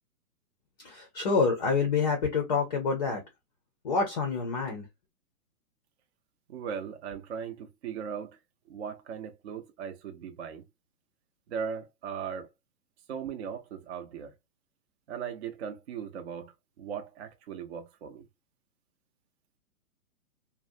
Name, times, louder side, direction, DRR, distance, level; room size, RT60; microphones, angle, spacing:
voice 1, 0.8-3.2 3.8-4.9, left 4 dB, 30° left, 0.5 m, -27 dB
voice 2, 6.5-8.4 8.7-10.7 11.5-12.5 13.1-14.3 15.1-18.3, right 7 dB, 45° right, 0.6 m, -38 dB
2.5 x 2.0 x 2.5 m
hypercardioid pair, 145°, 46 cm